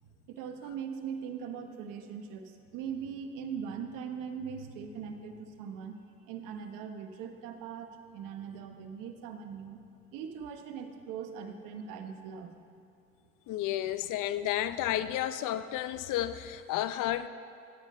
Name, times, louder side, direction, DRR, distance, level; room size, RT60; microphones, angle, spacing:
voice 1, 0.0-6.0 6.3-9.8 10.1-12.5, right 7 dB, 80° right, 6 dB, 1.1 m, -40 dB
voice 2, 13.5-17.3, left 12 dB, 70° left, 13 dB, 0.6 m, -32 dB
15.0 x 9.2 x 4.3 m, 2.5 s
supercardioid pair, 65°, 32 cm